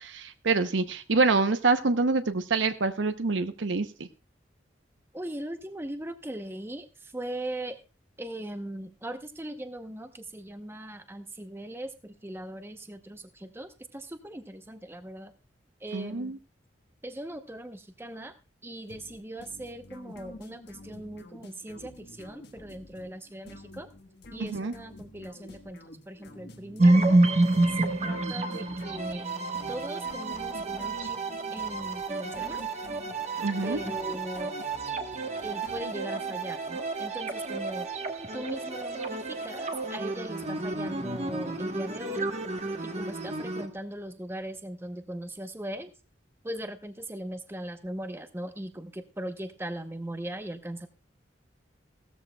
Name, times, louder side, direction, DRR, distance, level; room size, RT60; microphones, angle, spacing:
voice 1, 0.0-4.1 15.9-16.4 24.4-24.7 33.4-33.8, right 3 dB, 85° right, 10 dB, 0.7 m, -26 dB
voice 2, 5.1-7.8 8.2-15.3 15.8-16.3 17.0-18.3 18.6-23.9 24.3-25.8 26.1-27.2 27.8-29.3 29.7-31.2 31.5-32.6 33.6-34.6 35.4-37.9 38.3-42.3 42.8-45.9 46.4-50.9, right 1 dB, 15° right, 8 dB, 0.8 m, -39 dB
sound 1, 18.9-36.4, left 1 dB, 60° left, 1.3 m, -49 dB
sound 2, 26.8-43.7, right 2 dB, 35° right, 1.1 m, -29 dB
16.5 x 13.5 x 2.2 m, 0.32 s
head